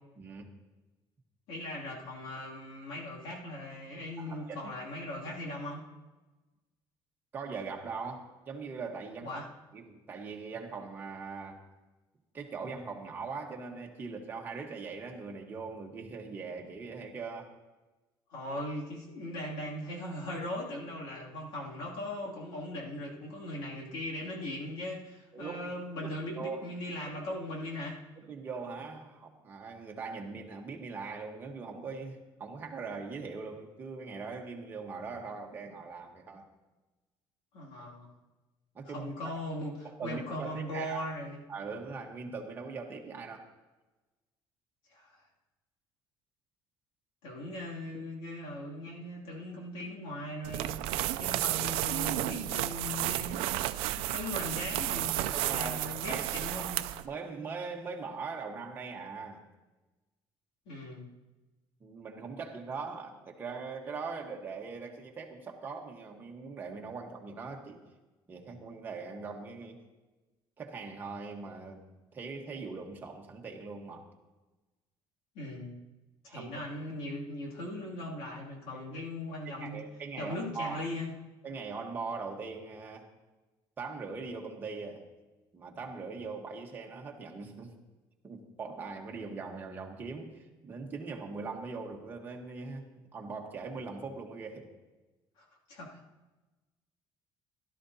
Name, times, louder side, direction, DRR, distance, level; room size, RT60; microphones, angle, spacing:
voice 1, 0.2-0.5 4.2-4.7 7.3-9.4 9.7-11.6 12.3-17.5 25.3-25.7 26.0-26.6 27.1-27.2 28.2-36.5 38.7-39.3 39.8-41.0 41.5-43.5 55.3-56.3 56.6-56.7 57.0-59.4 61.8-67.8 68.3-69.8 70.6-71.8 72.1-74.0 76.3-76.5 78.7-78.8 79.6-80.8 81.4-83.1 83.8-85.0 85.5-87.7 88.2-94.7, right 4 dB, 20° right, 1 dB, 1.2 m, -41 dB
voice 2, 1.5-5.8 9.2-9.5 18.3-28.0 37.5-38.1 38.8-41.4 44.9-45.2 47.2-53.5 54.0-56.8 60.7-61.1 75.3-75.8 76.2-79.8 80.2-81.1 95.4-96.0, left 1 dB, 70° left, -3 dB, 2.6 m, -39 dB
sound 1, 50.4-57.1, right 15 dB, 85° right, 0.4 m, -32 dB
16.5 x 12.0 x 2.8 m, 1.2 s
cardioid pair, 180°, 9 cm